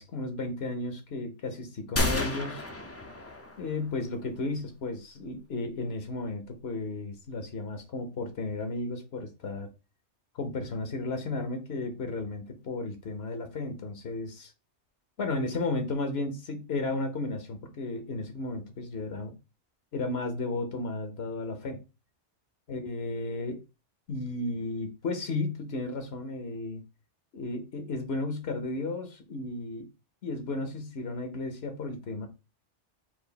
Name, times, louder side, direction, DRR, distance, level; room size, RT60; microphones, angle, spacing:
voice 1, 0.0-2.7 3.6-9.7 10.3-14.5 15.2-19.3 19.9-21.8 22.7-23.6 24.1-26.8 27.3-29.9 30.2-32.3, left 2 dB, 65° left, 1.1 m, -34 dB
sound 1, 2.0-3.8, left 2 dB, 25° left, 0.3 m, -31 dB
4.7 x 2.5 x 3.9 m
omnidirectional pair, 1.2 m